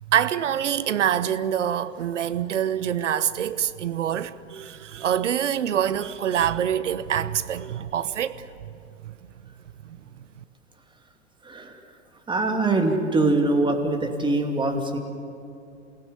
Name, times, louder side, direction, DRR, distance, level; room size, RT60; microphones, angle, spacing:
voice 1, 0.0-8.7 9.0-9.1 9.8-10.0, right 9 dB, 75° right, 1.0 m, -25 dB
voice 2, 12.3-15.0, right 2 dB, 15° right, 2.5 m, -23 dB
28.0 x 16.5 x 9.4 m
hypercardioid pair, 105°, 36 cm